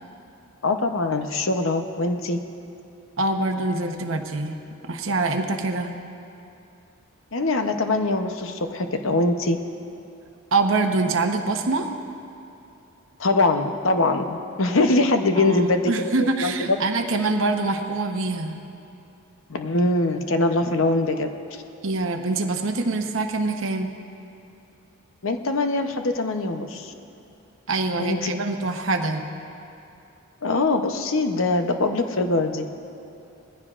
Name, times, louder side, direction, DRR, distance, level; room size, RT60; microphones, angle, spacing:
voice 1, 0.6-2.4 7.3-9.6 13.2-16.6 19.5-21.3 25.2-26.9 28.0-28.4 30.4-32.7, left 2 dB, 70° left, 6 dB, 0.8 m, -23 dB
voice 2, 3.2-4.5 4.8-5.9 10.5-11.9 15.4-18.6 21.8-23.9 27.7-29.2, right 3 dB, 65° right, 4 dB, 0.9 m, -24 dB
20.0 x 15.0 x 2.5 m, 2.8 s
head